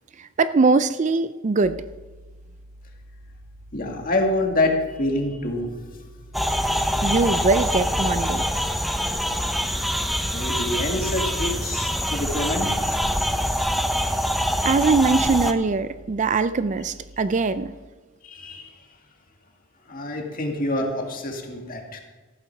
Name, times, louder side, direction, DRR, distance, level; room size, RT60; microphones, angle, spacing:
voice 1, 0.2-1.7 7.0-8.4 14.6-17.7, right 4 dB, 35° right, 13 dB, 0.3 m, -21 dB
sound 1, 1.6-17.6, equal, 70° right, 1.2 m, -47 dB
voice 2, 3.7-6.0 6.3-6.4 10.3-12.8 18.2-18.7 19.9-22.0, left 1 dB, 40° left, 2 dB, 2.1 m, -26 dB
sound 2, 6.3-15.5, equal, ahead, 0.7 m, -24 dB
14.5 x 8.7 x 5.9 m, 1.3 s
head